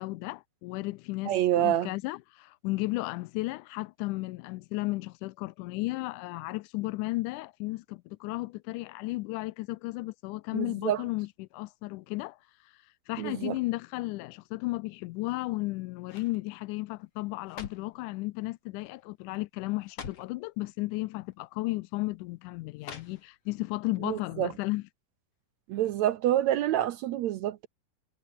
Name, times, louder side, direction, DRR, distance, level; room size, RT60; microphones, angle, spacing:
voice 1, 0.0-12.4 13.1-24.8, left 21 dB, 80° left, 1.8 m, -34 dB
voice 2, 1.3-1.9 10.5-11.0 13.2-13.6 24.0-24.5 25.7-27.7, right 12 dB, 75° right, 1.7 m, -27 dB
sound 1, 15.2-15.6 16.0-16.4 17.2-18.0 18.8-19.1 19.3-19.4 19.8-20.4 21.3-21.4 22.8-23.5 23.9-24.0, left 7 dB, 45° left, 3.3 m, -45 dB
omnidirectional pair, 4.0 m